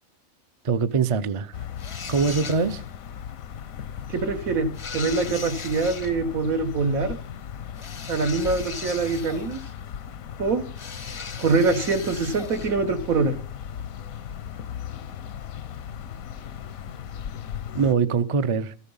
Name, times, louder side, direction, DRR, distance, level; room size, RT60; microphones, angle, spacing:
voice 1, 0.6-1.6 2.1-2.8 17.7-18.7, right 5 dB, 50° right, 0.4 m, -23 dB
sound 1, 1.5-17.9, left 9 dB, 85° left, 1.2 m, -37 dB
sound 2, 1.8-2.9 4.7-6.1 7.7-9.8 10.8-12.8, left 5 dB, 40° left, 0.4 m, -38 dB
voice 2, 4.1-7.2 8.1-9.6 10.4-10.6 11.4-13.4, right 3 dB, 85° right, 1.7 m, -24 dB
14.0 x 8.3 x 5.5 m
omnidirectional pair, 1.4 m